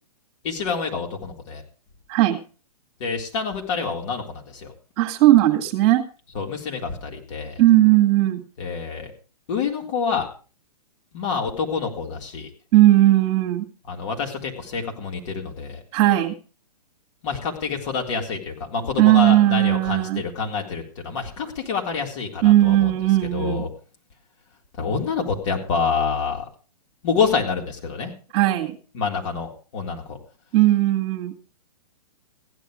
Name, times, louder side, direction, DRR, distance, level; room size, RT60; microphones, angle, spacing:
voice 1, 0.4-1.6 3.0-4.7 6.3-7.6 8.6-9.1 9.5-10.3 11.1-12.5 13.9-15.8 17.2-22.9 23.3-23.7 24.8-26.5 27.0-28.1 28.9-30.2, left 5 dB, 50° left, 1 dB, 3.7 m, -27 dB
voice 2, 2.1-2.4 5.0-6.0 7.6-8.5 12.7-13.7 15.9-16.3 19.0-20.2 22.4-23.6 28.3-28.8 30.5-31.3, right 15 dB, 40° right, 4 dB, 1.9 m, -17 dB
15.5 x 10.0 x 5.1 m, 0.36 s
hypercardioid pair, 125°, 21 cm